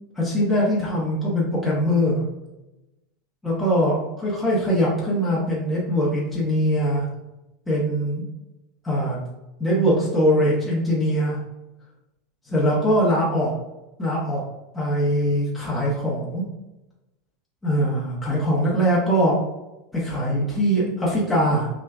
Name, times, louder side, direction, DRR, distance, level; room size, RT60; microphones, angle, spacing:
voice 1, 0.1-2.2 3.4-7.1 7.7-8.2 8.8-9.2 9.6-11.4 12.5-13.5 14.0-14.4 14.7-16.5 17.6-19.4 19.9-21.7, equal, 10° left, -6 dB, 0.9 m, -22 dB
5.5 x 2.3 x 2.4 m, 0.98 s
supercardioid pair, 130°, 0 cm